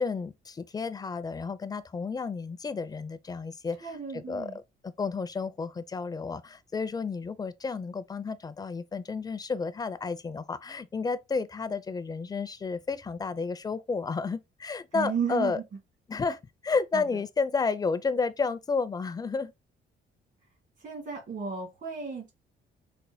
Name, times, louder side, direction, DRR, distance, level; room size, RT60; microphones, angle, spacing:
voice 1, 0.0-15.6 16.1-19.5, left 4 dB, 20° left, 0.4 m, -31 dB
voice 2, 3.8-4.6 14.9-15.6 16.9-17.0 20.8-22.3, right 6 dB, 60° right, 1.6 m, -34 dB
4.2 x 2.1 x 2.7 m
cardioid pair, 90°, 20 cm